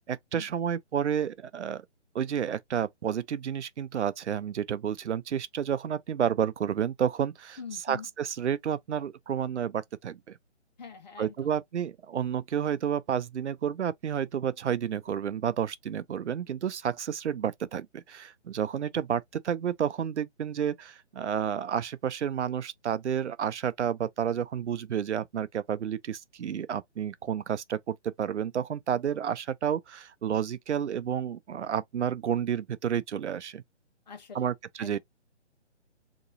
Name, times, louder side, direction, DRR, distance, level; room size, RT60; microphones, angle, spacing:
voice 1, 0.0-1.8 2.1-7.6 7.9-10.4 11.2-33.6 34.3-35.0, right 8 dB, 70° right, 0.5 m, -30 dB
voice 2, 7.6-8.1 10.8-11.6 34.1-34.5 34.8-35.0, left 6 dB, 35° left, 1.0 m, -44 dB
3.8 x 3.0 x 2.5 m
hypercardioid pair, 155°, 36 cm